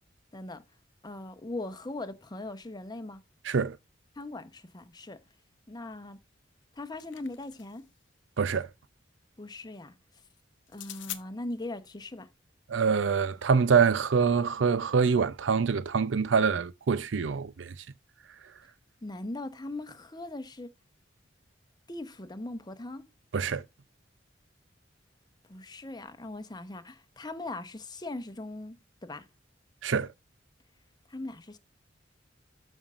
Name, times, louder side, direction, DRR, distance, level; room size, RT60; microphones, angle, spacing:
voice 1, 0.3-0.6 1.0-3.2 4.2-5.2 5.7-6.2 6.8-7.9 9.4-9.9 10.7-12.3 19.0-20.7 21.9-23.1 25.5-28.8 29.0-29.3 31.1-31.6, left 2 dB, 20° left, 0.8 m, -40 dB
sound 1, 6.6-7.9 10.7-11.2, left 14 dB, 75° left, 0.7 m, -43 dB
voice 2, 8.4-8.7 12.7-17.7 23.3-23.6 29.8-30.1, right 5 dB, 85° right, 0.5 m, -25 dB
13.0 x 5.4 x 2.5 m
head